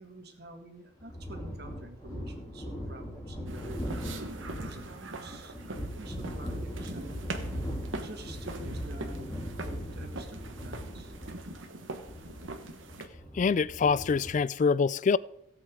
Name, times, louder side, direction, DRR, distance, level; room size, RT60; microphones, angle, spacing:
voice 1, 0.0-4.1 4.6-7.2 7.6-11.2, right 1 dB, 55° right, 1.9 m, -48 dB
sound 1, 1.0-14.3, equal, 15° left, 2.9 m, -39 dB
sound 2, 3.5-13.1, right 2 dB, 75° right, 1.3 m, -42 dB
voice 2, 13.3-15.2, left 5 dB, 40° left, 0.3 m, -25 dB
16.5 x 8.5 x 3.7 m
head